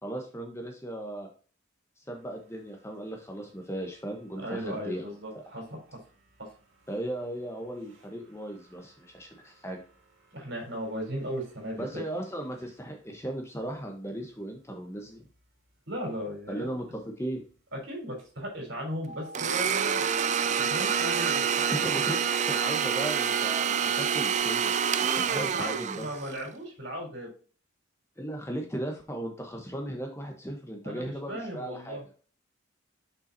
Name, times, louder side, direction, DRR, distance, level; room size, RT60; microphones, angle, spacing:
voice 1, 0.0-1.3 2.0-5.1 5.3-5.4 6.9-9.8 11.8-15.2 16.5-17.4 21.7-26.1 28.2-32.0, right 1 dB, 15° left, 2 dB, 1.1 m, -37 dB
sound 1, 2.1-21.6, right 1 dB, 75° right, 2.7 m, -51 dB
voice 2, 4.4-6.0 6.4-6.5 10.3-12.0 15.9-16.7 17.7-21.0 25.3-27.3 30.8-32.0, equal, 60° right, 0 dB, 3.8 m, -37 dB
sound 2, 19.1-24.4, equal, 85° left, 1.5 m, -45 dB
Domestic sounds home sounds, 19.3-26.4, right 7 dB, 35° right, 0.3 m, -27 dB
7.0 x 5.6 x 2.8 m, 0.38 s
head